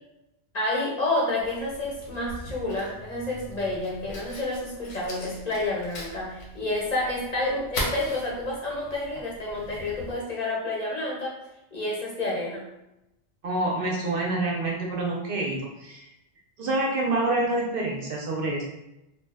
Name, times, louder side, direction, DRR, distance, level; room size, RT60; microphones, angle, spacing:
voice 1, 0.5-11.3 11.7-12.6, left 2 dB, 45° left, -5 dB, 0.7 m, -29 dB
Fire, 1.4-10.2, equal, 85° left, 1.0 m, -39 dB
voice 2, 13.4-16.1 16.6-18.6, right 2 dB, 60° right, -2 dB, 0.7 m, -27 dB
2.7 x 2.0 x 3.3 m, 0.90 s
omnidirectional pair, 1.1 m